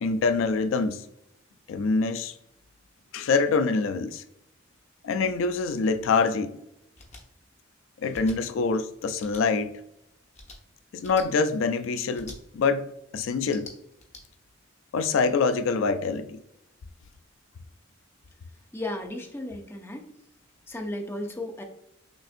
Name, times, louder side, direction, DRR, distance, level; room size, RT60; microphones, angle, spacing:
voice 1, 0.0-1.1 1.7-2.3 3.1-4.2 5.0-6.6 8.0-9.8 10.9-13.7 14.9-16.4, left 4 dB, 85° left, 0.4 m, -25 dB
sound 1, 6.9-7.2 8.1-8.4 9.2-9.4 10.3-10.6 11.0-11.3 12.1-12.4 13.4-14.2, left 2 dB, 35° left, 0.8 m, -45 dB
voice 2, 18.7-20.1 20.7-21.6, left 1 dB, 10° left, 0.5 m, -34 dB
6.0 x 2.5 x 2.5 m
head